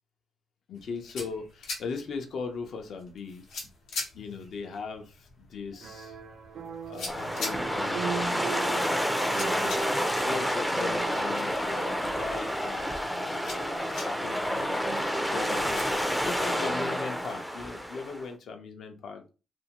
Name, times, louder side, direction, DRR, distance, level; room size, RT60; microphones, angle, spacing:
sound 1, 0.7-15.8, left 3 dB, 90° left, 0.9 m, -44 dB
voice 1, 0.7-3.4 4.1-6.2 6.8-9.1 9.6-9.7 10.1-19.3, left 5 dB, 65° left, 0.6 m, -39 dB
sound 2, 5.8-17.1, right 6 dB, 65° right, 0.5 m, -40 dB
sound 3, 7.1-18.3, equal, 5° left, 0.4 m, -29 dB
2.6 x 2.1 x 2.9 m
cardioid pair, 105°, 0 cm